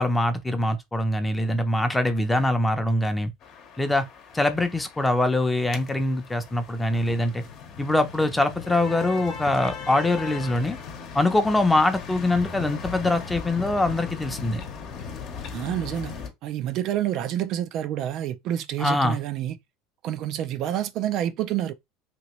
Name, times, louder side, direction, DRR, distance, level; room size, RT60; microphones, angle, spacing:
voice 1, 0.0-3.3 3.8-4.0 4.3-7.4 7.8-10.8 11.1-14.6 18.8-19.2, left 1 dB, 10° left, 0.6 m, -23 dB
sound 1, 3.4-16.3, left 6 dB, 50° left, 0.9 m, -38 dB
voice 2, 15.5-19.6 20.0-21.7, right 11 dB, 55° right, 0.3 m, -28 dB
3.0 x 2.8 x 3.0 m
supercardioid pair, 110°, 0 cm